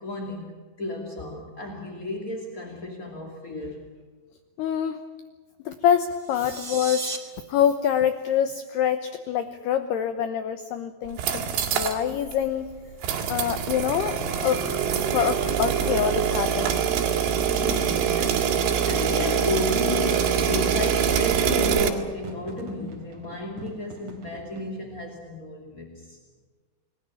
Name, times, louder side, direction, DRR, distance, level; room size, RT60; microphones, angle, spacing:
voice 1, 0.0-3.9 11.5-11.6 17.5-26.2, left 3 dB, 30° left, 1 dB, 1.8 m, -33 dB
voice 2, 4.6-5.0 5.7-7.1 7.5-11.4 11.7-12.7 13.3-16.7, left 9 dB, 70° left, 9 dB, 2.6 m, -25 dB
sound 1, 6.1-7.2, right 3 dB, 25° right, 1.1 m, -35 dB
sound 2, 11.1-12.0 12.3-12.4 13.0-21.9, right 8 dB, 75° right, 4.9 m, -24 dB
sound 3, 22.2-24.7, right 2 dB, 45° right, 4.6 m, -46 dB
29.0 x 20.0 x 7.3 m, 1.5 s
omnidirectional pair, 5.7 m